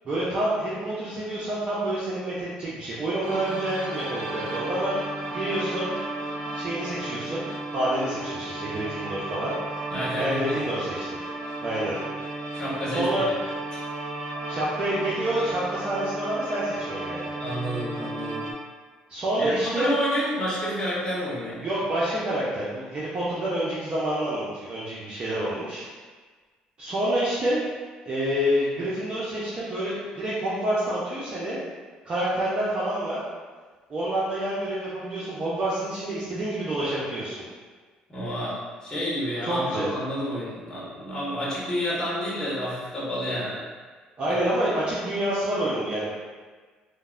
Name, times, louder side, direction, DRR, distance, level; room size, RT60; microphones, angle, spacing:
voice 1, 0.0-4.9 5.3-5.9 6.5-9.5 10.2-11.2 11.6-12.0 12.9-13.3 14.5-17.3 19.1-19.9 21.6-25.8 26.8-27.6 28.1-31.6 32.1-33.2 33.9-37.4 39.4-39.9 44.2-46.1, right 1 dB, 40° right, -8 dB, 0.6 m, -28 dB
sound 1, 3.2-18.5, right 2 dB, 90° right, 0.4 m, -34 dB
voice 2, 9.9-10.6 12.5-13.4 13.7-13.8 17.4-18.5 19.4-21.6 38.1-43.7 44.2-44.4, equal, 25° left, -8 dB, 1.1 m, -30 dB
3.3 x 2.0 x 2.4 m, 1.4 s
cardioid pair, 90°, 3 cm